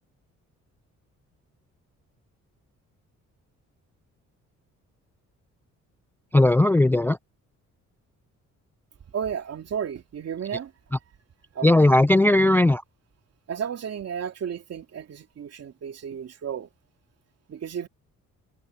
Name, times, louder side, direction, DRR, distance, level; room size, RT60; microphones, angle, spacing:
voice 1, 6.3-7.2 11.6-12.8, left 2 dB, 5° left, 0.3 m, -17 dB
voice 2, 9.1-10.7 11.5-11.7 12.3-12.4 13.5-16.7 17.5-17.9, right 8 dB, 55° right, 2.8 m, -33 dB
cardioid pair, 90°, 30 cm